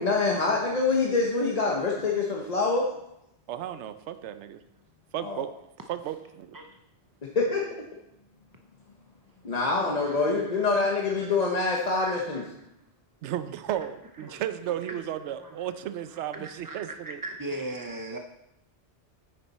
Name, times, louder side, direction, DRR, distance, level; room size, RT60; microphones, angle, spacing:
voice 1, 0.0-2.9 5.2-5.4 7.3-7.6 9.4-12.4, left 3 dB, 40° left, -1 dB, 1.0 m, -25 dB
voice 2, 3.5-4.6 5.1-5.5 5.9-6.6 13.2-17.2, right 11 dB, 80° right, 11 dB, 0.9 m, -34 dB
voice 3, 10.0-10.5 11.2-11.4 12.0-12.5 14.2-14.4 14.9-15.0 15.4-15.7 16.1-18.2, right 2 dB, 35° right, 4 dB, 0.3 m, -39 dB
9.1 x 6.9 x 4.1 m, 0.83 s
omnidirectional pair, 1.2 m